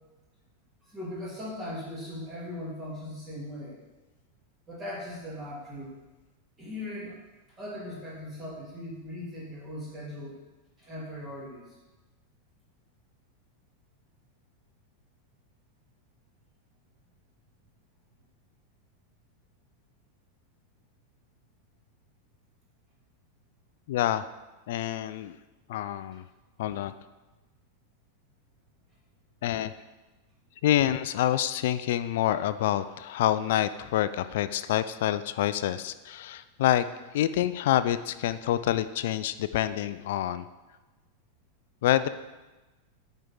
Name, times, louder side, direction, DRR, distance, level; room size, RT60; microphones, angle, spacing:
voice 1, 0.9-3.8 4.7-6.0 6.6-7.2 7.6-10.4 10.8-11.8, left 1 dB, 20° right, -7 dB, 2.5 m, -39 dB
voice 2, 23.9-24.2 24.7-25.4 25.7-26.2 26.6-26.9 29.4-29.7 30.6-36.9 37.1-40.5 41.8-42.1, left 12 dB, 55° left, 13 dB, 0.3 m, -27 dB
9.4 x 4.5 x 3.8 m, 1.1 s
figure-of-eight pair, 90°, 0 cm